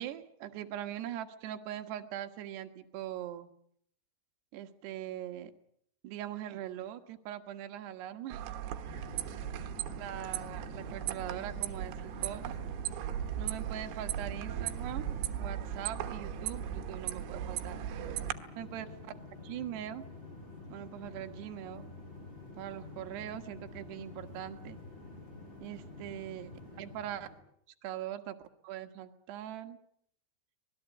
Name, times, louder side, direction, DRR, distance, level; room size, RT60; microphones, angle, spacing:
voice 1, 0.0-3.5 4.5-5.5 6.0-8.4 9.9-12.6 13.4-17.8 18.6-18.9 19.5-20.1 20.7-21.9 22.6-24.8 25.6-27.3 27.8-28.4 28.6-29.8, right 11 dB, 75° right, 7 dB, 3.6 m, -41 dB
sound 1, 8.3-18.3, right 11 dB, 90° right, 3.6 m, -37 dB
sound 2, 8.8-27.4, left 3 dB, 10° left, 6.7 m, -49 dB
25.0 x 21.0 x 8.3 m, 0.69 s
omnidirectional pair, 5.1 m